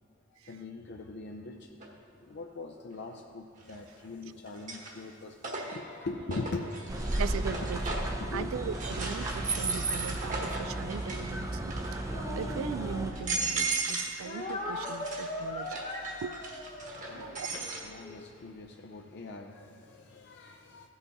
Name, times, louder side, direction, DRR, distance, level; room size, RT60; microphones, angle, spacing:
voice 1, 0.3-7.2 7.5-7.6 8.2-9.4 16.8-20.9, left 3 dB, 55° left, 2 dB, 0.5 m, -42 dB
sound 1, 1.8-1.9 3.6-4.1 4.5-8.2 8.7-11.3 11.6-12.1 12.7-12.8 13.1-14.2 14.5-17.8, right 3 dB, 40° right, 1.3 m, -37 dB
sound 2, 6.9-13.1, right 2 dB, 15° right, 0.5 m, -34 dB
voice 2, 7.2-7.8 8.3-15.8 16.2-16.4 17.1-17.5, right 7 dB, 80° right, 14 dB, 0.3 m, -39 dB
Speech, 12.0-13.6 14.2-18.3, left 1 dB, 35° left, 1.1 m, -40 dB
15.5 x 5.5 x 4.1 m, 2.4 s
head